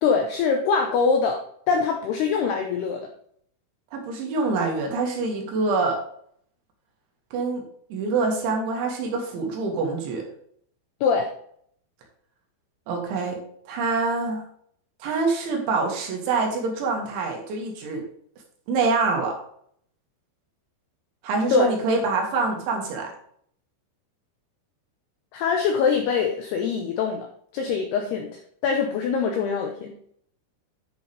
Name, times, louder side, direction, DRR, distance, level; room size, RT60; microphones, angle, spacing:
voice 1, 0.0-3.0 11.0-11.3 21.5-21.7 25.3-27.3 27.5-28.3 28.6-30.1, left 5 dB, 80° left, 3 dB, 2.3 m, -23 dB
voice 2, 3.9-6.0 7.3-7.6 7.9-10.2 12.9-13.4 13.7-14.4 15.0-18.0 18.7-19.4 21.2-23.1, right 3 dB, 70° right, 1 dB, 4.0 m, -25 dB
10.5 x 6.4 x 3.3 m, 0.64 s
omnidirectional pair, 5.8 m